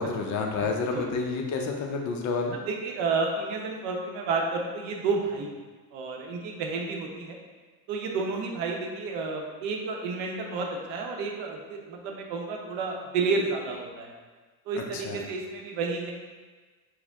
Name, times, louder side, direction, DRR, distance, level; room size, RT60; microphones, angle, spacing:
voice 1, 0.0-2.6 14.9-15.2, left 4 dB, 40° left, 1 dB, 0.5 m, -29 dB
voice 2, 0.6-1.1 2.7-5.5 5.9-7.4 7.9-14.1 14.7-16.1, right 4 dB, 80° right, 1 dB, 0.8 m, -31 dB
4.6 x 2.1 x 3.5 m, 1.3 s
cardioid pair, 115°, 45 cm